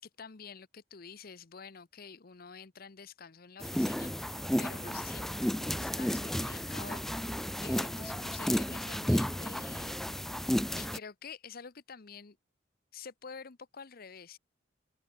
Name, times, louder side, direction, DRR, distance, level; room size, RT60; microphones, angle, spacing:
voice 1, 0.0-7.4 7.6-10.5 10.8-12.4 12.9-14.4, left 6 dB, 55° left, 0.9 m, -48 dB
sound 1, 3.6-11.0, equal, ahead, 0.3 m, -32 dB
open air
head